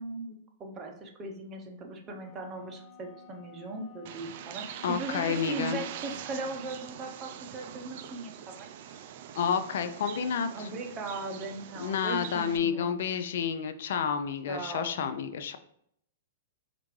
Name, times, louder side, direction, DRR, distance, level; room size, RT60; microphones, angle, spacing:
voice 1, 0.0-8.7 10.5-12.9 14.5-15.0, right 3 dB, 25° right, 3 dB, 0.7 m, -39 dB
sound 1, 2.0-6.6, left 4 dB, 10° left, 0.5 m, -53 dB
Bird, 4.0-12.6, right 10 dB, 55° right, 0.3 m, -43 dB
voice 2, 4.8-5.8 9.4-10.7 11.8-15.6, left 7 dB, 65° left, 9 dB, 0.4 m, -30 dB
4.3 x 2.5 x 3.1 m, 0.70 s
hypercardioid pair, 120°, 0 cm